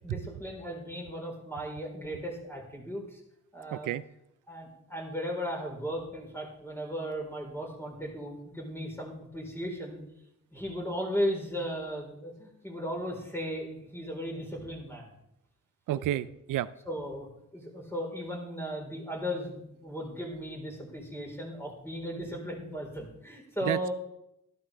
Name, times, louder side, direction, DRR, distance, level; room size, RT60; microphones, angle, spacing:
voice 1, 0.0-3.2 3.5-3.9 4.5-10.0 10.5-15.1 16.1-16.2 16.9-23.9, equal, 5° left, -1 dB, 4.2 m, -36 dB
voice 2, 3.7-4.0 15.9-16.7 23.6-23.9, right 13 dB, 75° right, 16 dB, 0.5 m, -31 dB
12.5 x 12.0 x 3.4 m, 0.82 s
cardioid pair, 75°, 32 cm